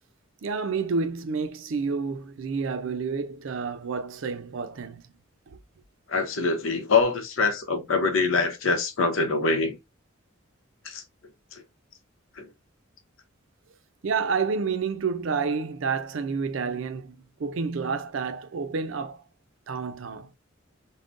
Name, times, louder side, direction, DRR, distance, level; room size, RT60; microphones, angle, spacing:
voice 1, 0.4-5.0 14.0-19.2 19.7-20.3, right 5 dB, 75° right, 0.5 m, -29 dB
voice 2, 6.1-9.8 10.8-11.0 12.4-12.5, left 4 dB, 80° left, 0.8 m, -24 dB
3.6 x 2.1 x 2.4 m
head